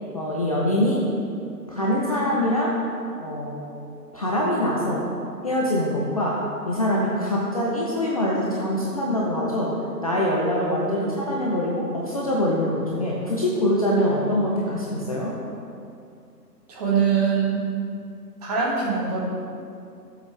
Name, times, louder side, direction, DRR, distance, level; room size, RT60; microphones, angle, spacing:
voice 1, 0.1-1.0 1.7-2.7 3.2-3.7 4.1-5.0 5.4-6.4 6.7-9.7 10.0-15.3, left 1 dB, 20° left, -4 dB, 0.8 m, -24 dB
voice 2, 16.7-17.6 18.4-19.2, right 6 dB, 25° right, -4 dB, 1.9 m, -22 dB
18.5 x 7.4 x 3.3 m, 2.5 s
figure-of-eight pair, 145°, 50 cm